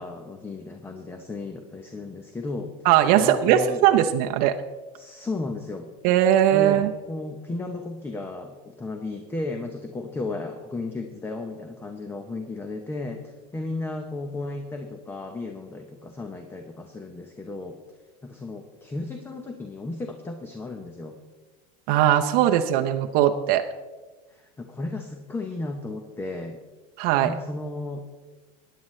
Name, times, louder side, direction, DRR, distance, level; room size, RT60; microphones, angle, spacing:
voice 1, 0.0-2.8 3.2-3.8 5.0-5.9 6.5-17.8 18.2-21.2 24.3-26.6 27.2-28.0, left 2 dB, 10° left, 5 dB, 0.8 m, -34 dB
voice 2, 2.8-4.5 6.0-6.9 21.9-23.6 27.0-27.3, right 11 dB, 50° right, 5 dB, 0.7 m, -19 dB
16.5 x 10.0 x 3.2 m, 1.3 s
supercardioid pair, 145°, 19 cm